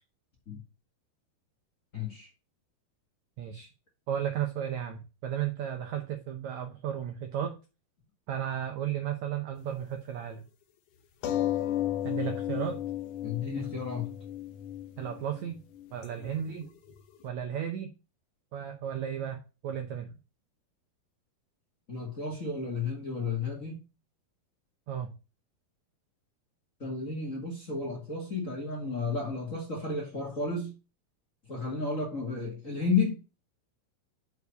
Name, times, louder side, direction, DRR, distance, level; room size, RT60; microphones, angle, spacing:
voice 1, 1.9-2.3 13.2-14.1 21.9-23.7 26.8-30.7 31.5-33.2, left 4 dB, 30° left, 1.6 m, -32 dB
voice 2, 3.4-3.7 4.1-7.5 8.3-10.4 12.0-12.8 15.0-15.6 15.9-16.6 17.2-17.9 18.5-20.1 24.9-25.1, right 9 dB, 85° right, 1.6 m, -34 dB
sound 1, 11.2-16.3 16.6-17.0, left 12 dB, 70° left, 1.9 m, -33 dB
6.6 x 4.8 x 6.6 m
omnidirectional pair, 4.5 m